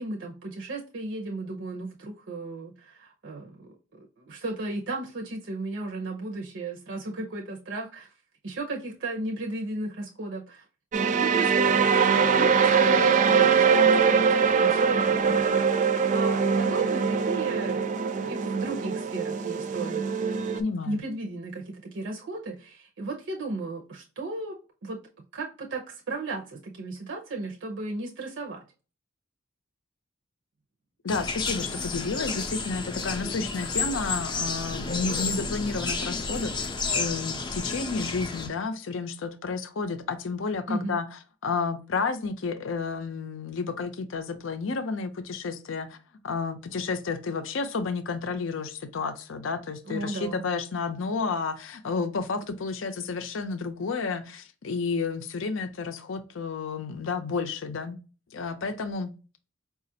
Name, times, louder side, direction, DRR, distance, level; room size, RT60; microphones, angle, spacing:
voice 1, 0.0-8.1 8.4-10.6 10.9-20.1 20.8-24.6 24.8-25.0 25.3-28.6 40.7-41.0 49.8-50.5, right 2 dB, 60° right, 0.7 m, -35 dB
sound 1, 10.9-20.6, right 6 dB, 40° right, 0.3 m, -22 dB
voice 2, 20.5-21.0 31.0-41.1 41.4-46.0 46.2-58.0 58.3-59.1, left 4 dB, 70° left, 0.5 m, -31 dB
sound 2, 31.1-38.5, left 4 dB, 20° left, 0.5 m, -31 dB
4.9 x 2.4 x 2.7 m
head